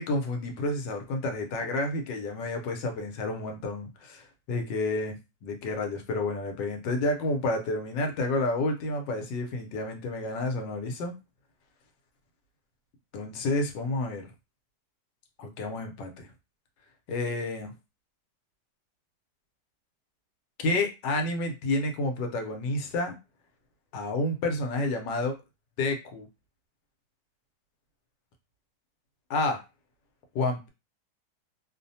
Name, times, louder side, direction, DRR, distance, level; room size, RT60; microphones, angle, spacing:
voice 1, 0.0-5.2 5.4-11.1 13.1-14.3 15.4-16.3 17.1-17.7 20.6-23.2 23.9-25.4 25.8-26.3 29.3-29.6 30.3-30.7, left 2 dB, 85° left, 4 dB, 1.3 m, -30 dB
3.1 x 2.1 x 2.6 m, 0.26 s
omnidirectional pair, 1.9 m